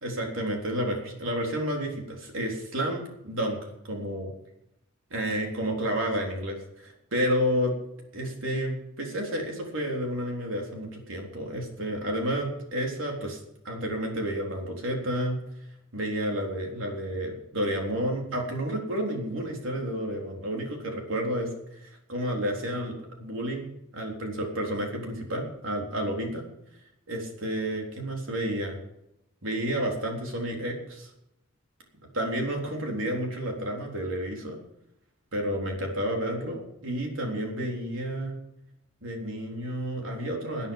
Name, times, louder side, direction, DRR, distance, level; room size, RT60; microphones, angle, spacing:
voice 1, 0.0-3.6 3.8-4.3 5.1-7.7 8.1-13.4 13.6-15.4 15.9-26.4 27.1-28.8 29.4-31.1 32.1-34.6 35.3-38.3 39.0-40.7, equal, 75° right, 0 dB, 3.7 m, -30 dB
18.5 x 9.5 x 5.5 m, 0.82 s
head